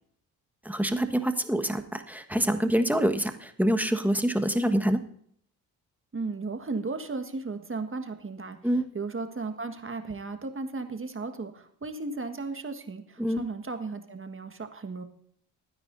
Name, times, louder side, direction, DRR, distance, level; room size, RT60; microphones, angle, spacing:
voice 1, 0.6-5.0 8.6-8.9 13.2-13.4, right 1 dB, 5° right, 7 dB, 1.4 m, -26 dB
voice 2, 6.1-15.0, right 3 dB, 25° right, 7 dB, 1.6 m, -35 dB
24.0 x 9.7 x 2.7 m, 0.63 s
hypercardioid pair, 45°, 45 cm